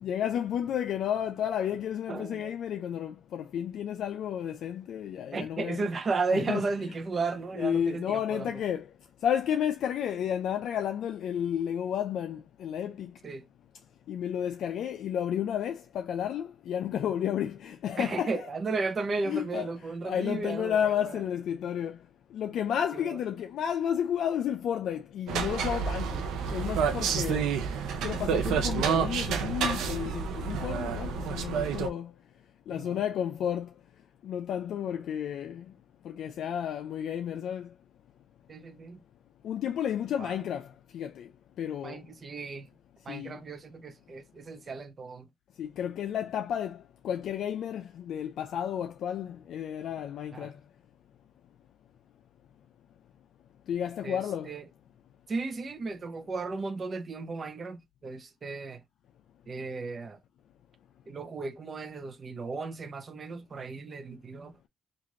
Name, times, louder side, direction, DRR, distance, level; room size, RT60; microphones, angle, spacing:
voice 1, 0.0-5.8 6.3-6.6 7.6-8.9 9.2-13.1 14.1-18.5 19.3-19.7 20.0-22.0 22.3-26.2 26.5-27.5 28.0-32.1 32.7-33.7 34.2-35.7 36.0-37.7 39.4-40.7 40.9-41.3 41.6-42.0 43.1-43.4 45.6-50.6 53.7-54.5, left 9 dB, 75° left, 0.4 m, -32 dB
voice 2, 2.1-2.5 5.3-8.5 13.2-13.4 18.0-21.2 22.9-23.2 32.7-33.0 38.5-39.0 40.2-40.4 41.8-42.7 43.0-45.3 50.3-50.5 54.0-54.6 55.3-58.8 59.5-60.2 61.1-64.6, right 3 dB, 45° right, 0.6 m, -35 dB
sound 1, 25.3-31.9, right 6 dB, 90° right, 0.6 m, -29 dB
3.1 x 2.5 x 3.6 m
cardioid pair, 80°, 0 cm